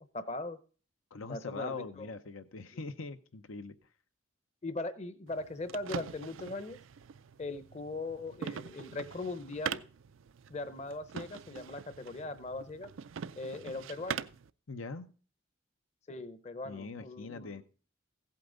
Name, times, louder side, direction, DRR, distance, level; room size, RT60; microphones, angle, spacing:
voice 1, 0.1-0.6 1.3-2.1 2.7-2.8 4.6-6.8 7.4-9.8 10.5-12.9 13.4-14.3 16.1-17.6, left 2 dB, 35° left, 13 dB, 0.7 m, -40 dB
voice 2, 1.1-3.8 14.7-15.1 16.6-17.6, left 3 dB, 90° left, 9 dB, 0.8 m, -42 dB
sound 1, 5.3-14.5, right 7 dB, 75° right, 0.4 m, -43 dB
15.5 x 8.5 x 3.9 m, 0.38 s
head